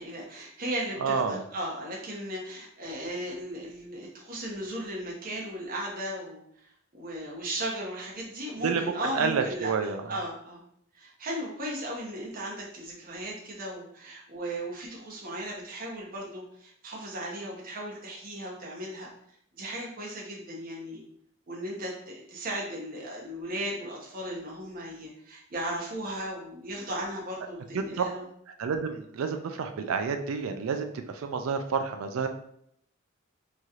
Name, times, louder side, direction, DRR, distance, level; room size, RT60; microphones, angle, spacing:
voice 1, 0.0-6.4 6.9-9.7 10.1-10.6 10.9-19.1 19.5-21.0 21.5-28.3, right 1 dB, 45° right, -2 dB, 0.8 m, -36 dB
voice 2, 1.0-1.4 8.6-10.1 28.0-28.1 28.5-32.3, right 5 dB, 85° right, 7 dB, 0.4 m, -29 dB
3.0 x 2.7 x 2.4 m, 0.69 s
head